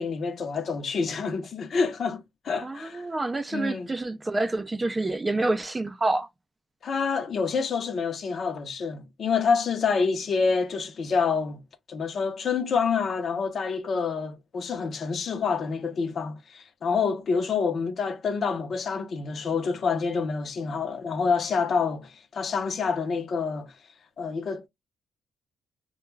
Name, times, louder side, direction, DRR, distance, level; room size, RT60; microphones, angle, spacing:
voice 1, 0.0-3.1 3.5-3.9 6.8-11.6 11.9-23.7 24.2-24.7, left 5 dB, 50° left, 0.6 m, -27 dB
voice 2, 2.6-6.3, right 2 dB, 20° right, 0.4 m, -28 dB
2.2 x 2.2 x 3.1 m
cardioid pair, 90°, 0 cm